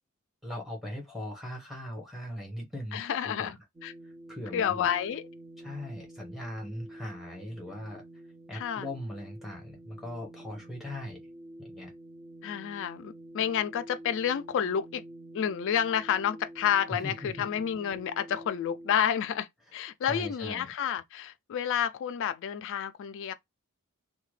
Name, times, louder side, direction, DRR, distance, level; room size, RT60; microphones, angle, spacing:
voice 1, 0.4-3.5 4.0-4.8 5.6-8.0 8.5-11.2 11.6-11.9 16.9-17.3 20.1-20.7, left 1 dB, ahead, 1.0 m, -39 dB
voice 2, 2.9-3.6 3.8-3.9 4.5-5.2 8.5-8.9 12.4-15.0 15.3-23.3, left 9 dB, 60° left, 0.3 m, -30 dB
sound 1, 3.7-18.9, right 1 dB, 20° right, 0.5 m, -48 dB
2.8 x 2.2 x 3.1 m
head